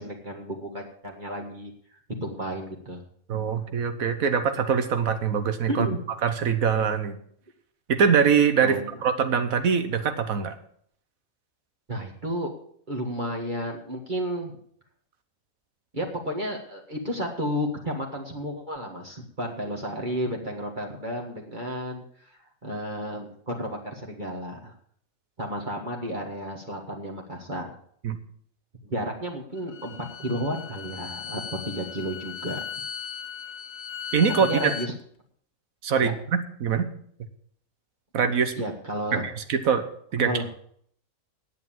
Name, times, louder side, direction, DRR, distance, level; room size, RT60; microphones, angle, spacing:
voice 1, 0.0-3.0 5.7-6.0 8.6-8.9 11.9-12.5 12.9-14.6 15.9-24.7 25.4-27.7 28.9-29.9 30.2-32.6 34.4-34.9 36.0-36.1 38.6-39.3 40.2-40.5, equal, 35° right, -1 dB, 1.8 m, -32 dB
voice 2, 3.3-5.9 6.2-7.2 7.9-10.5 28.0-28.2 34.1-34.7 35.8-36.9 38.1-38.5 39.1-39.8 40.1-40.3, right 6 dB, 80° right, 9 dB, 1.4 m, -23 dB
Bowed string instrument, 29.6-34.9, left 7 dB, 80° left, 1.2 m, -37 dB
10.0 x 8.5 x 7.4 m, 0.63 s
omnidirectional pair, 1.4 m